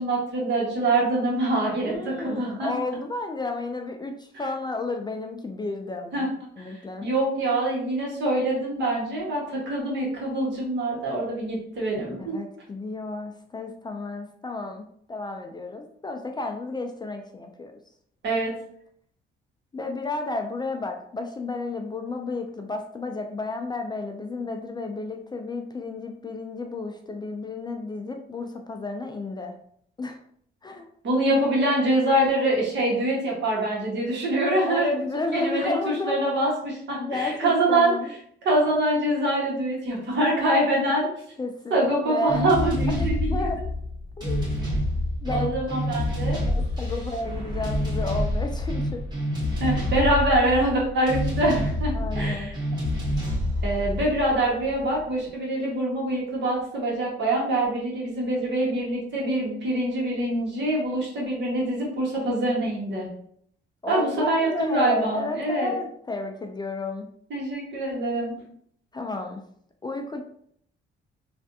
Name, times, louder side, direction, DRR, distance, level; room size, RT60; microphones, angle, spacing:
voice 1, 0.0-2.7 6.1-6.3 6.6-6.7 7.0-12.4 18.2-18.5 31.0-37.9 38.4-41.1 41.7-43.4 45.3-46.4 49.6-52.6 53.6-63.1 63.9-65.7 67.3-68.3, right 1 dB, 65° right, -3 dB, 1.4 m, -25 dB
voice 2, 1.8-6.3 6.6-7.1 12.2-17.7 19.7-29.6 30.0-30.2 30.6-30.9 34.7-36.2 37.0-38.1 41.4-42.5 43.0-43.6 44.2-44.6 45.2-45.5 45.8-46.0 46.5-49.0 51.9-52.5 63.8-67.1 68.9-69.4 69.8-70.2, left 2 dB, 20° left, 4 dB, 0.3 m, -32 dB
sound 1, 42.3-55.0, left 1 dB, 20° right, 1.5 m, -27 dB
3.3 x 2.5 x 2.7 m, 0.67 s
cardioid pair, 90°, 20 cm